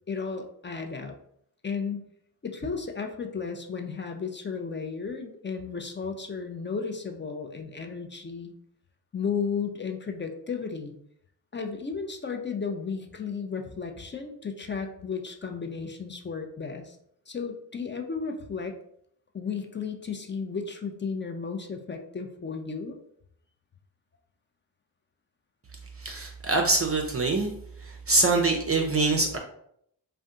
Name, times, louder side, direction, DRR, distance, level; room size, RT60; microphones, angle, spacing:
voice 1, 0.1-1.2 1.6-2.1 2.4-8.5 9.1-10.9 11.5-17.0 17.3-18.8 19.3-23.0, left 5 dB, 25° left, 4 dB, 0.4 m, -34 dB
voice 2, 26.0-27.5 27.8-29.4, right 3 dB, 30° right, 2 dB, 0.5 m, -24 dB
2.5 x 2.2 x 3.6 m, 0.71 s
supercardioid pair, 40°, 48 cm